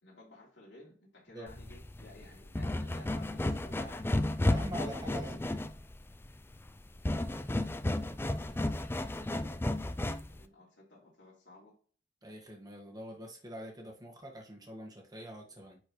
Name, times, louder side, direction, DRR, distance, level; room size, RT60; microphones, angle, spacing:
voice 1, 0.0-4.2 9.6-11.7, left 2 dB, 70° left, -6 dB, 2.8 m, -55 dB
sound 1, 1.5-10.4, left 1 dB, 15° left, 0.4 m, -33 dB
voice 2, 4.4-5.4 12.2-15.8, equal, 20° right, 0 dB, 1.6 m, -44 dB
9.8 x 4.5 x 3.1 m, 0.43 s
head